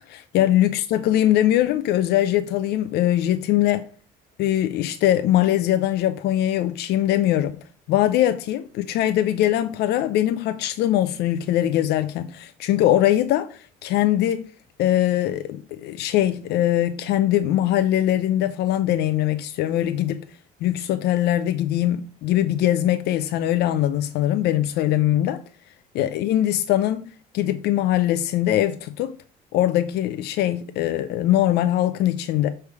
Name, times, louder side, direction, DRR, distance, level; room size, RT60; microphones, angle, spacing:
voice 1, 0.1-3.9 4.4-7.5 7.9-14.4 14.8-20.2 20.6-25.4 25.9-29.1 29.5-32.5, left 13 dB, 80° left, 0.5 m, -21 dB
6.8 x 3.3 x 4.7 m
cardioid pair, 110°, 17 cm